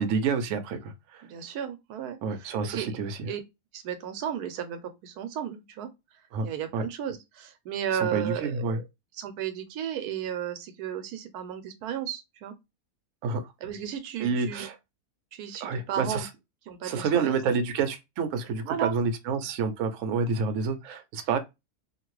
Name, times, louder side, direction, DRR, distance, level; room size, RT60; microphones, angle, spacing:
voice 1, 0.0-1.2 2.2-3.3 6.3-6.5 6.7-6.9 7.9-8.8 13.2-13.5 14.2-14.8 15.6-16.3 16.8-21.4, right 5 dB, 65° right, 0.9 m, -28 dB
voice 2, 1.2-2.2 2.6-3.0 3.2-3.4 3.7-5.9 6.4-8.8 9.2-12.5 13.6-14.7 15.3-16.3 16.7-17.4 18.6-18.9, right 9 dB, 90° right, 1.1 m, -34 dB
2.9 x 2.5 x 3.0 m
omnidirectional pair, 1.6 m